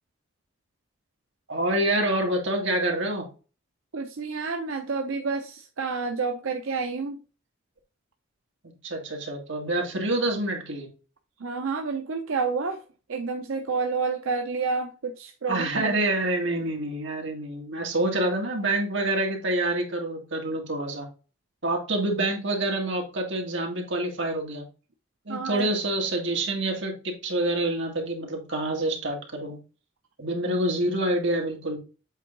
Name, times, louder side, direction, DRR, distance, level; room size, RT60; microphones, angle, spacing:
voice 1, 1.5-3.3 8.8-10.9 15.5-21.1 21.6-24.6 25.3-29.6 30.2-31.8, right 1 dB, 65° right, 1 dB, 2.2 m, -27 dB
voice 2, 3.9-7.2 11.4-12.8 13.1-16.0 25.3-25.7, right 4 dB, 90° right, 4 dB, 0.7 m, -29 dB
8.0 x 3.8 x 3.8 m, 0.34 s
head